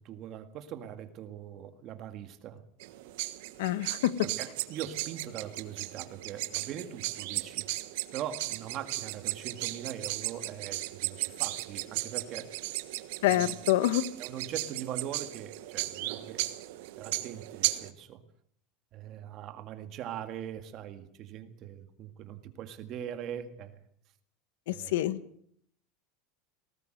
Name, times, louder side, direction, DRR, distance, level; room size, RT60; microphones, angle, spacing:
voice 1, 0.0-2.6 4.2-7.7 8.1-12.5 13.2-13.5 14.2-16.4 17.0-18.2 18.9-23.8 24.7-25.0, right 10 dB, 35° right, 9 dB, 1.9 m, -41 dB
sound 1, 2.8-17.9, right 17 dB, 70° right, 1.4 m, -36 dB
voice 2, 3.6-4.1 13.2-14.0 24.7-25.2, left 14 dB, 85° left, 15 dB, 1.3 m, -26 dB
19.5 x 18.0 x 7.9 m, 0.67 s
supercardioid pair, 170°, 0 cm